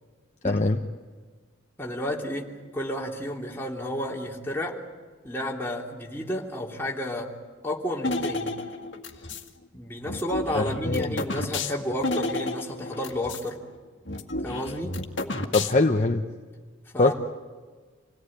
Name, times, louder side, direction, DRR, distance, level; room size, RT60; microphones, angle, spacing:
voice 1, 0.4-0.8 10.5-11.2 15.5-16.2 17.0-17.1, left 2 dB, 35° left, 4 dB, 1.0 m, -22 dB
voice 2, 1.8-2.5 2.7-4.8 5.2-7.3 7.6-8.5 9.7-13.6 14.4-15.0 16.9-17.1, left 1 dB, 10° left, -2 dB, 3.2 m, -31 dB
sound 1, 8.0-9.5 10.1-13.5 13.7-13.8 14.1-16.0, left 2 dB, 55° left, 2.0 m, -31 dB
28.0 x 18.0 x 10.0 m, 1.5 s
head